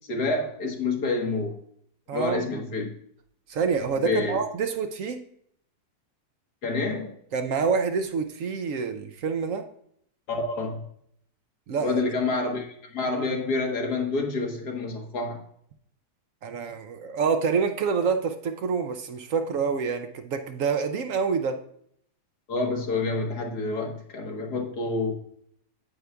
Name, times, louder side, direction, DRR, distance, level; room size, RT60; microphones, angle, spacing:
voice 1, 0.1-1.6 2.1-2.9 4.0-4.4 6.6-7.1 10.3-10.8 11.8-15.4 22.5-25.1, left 3 dB, 80° left, 1 dB, 1.8 m, -28 dB
voice 2, 2.1-2.6 3.5-5.2 7.3-9.6 11.7-12.0 16.4-21.6, right 5 dB, 65° right, 7 dB, 0.9 m, -27 dB
9.4 x 8.1 x 2.3 m, 0.68 s
omnidirectional pair, 1.7 m